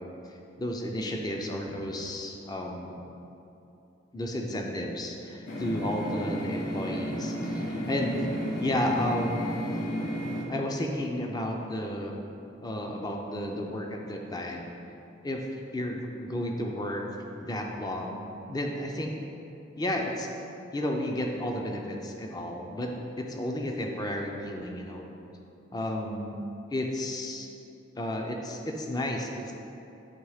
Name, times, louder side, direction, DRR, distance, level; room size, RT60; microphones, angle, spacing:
voice 1, 0.0-3.0 4.1-8.2 8.6-9.5 10.5-12.2 12.6-14.7 15.2-15.4 15.7-17.0 17.3-19.1 19.8-20.3 20.7-25.1 25.7-26.4 26.7-27.5 28.0-29.5, left 1 dB, 20° left, 1 dB, 0.5 m, -32 dB
sound 1, 5.5-10.4, equal, 80° left, 1.0 m, -32 dB
8.9 x 3.1 x 4.8 m, 2.8 s
head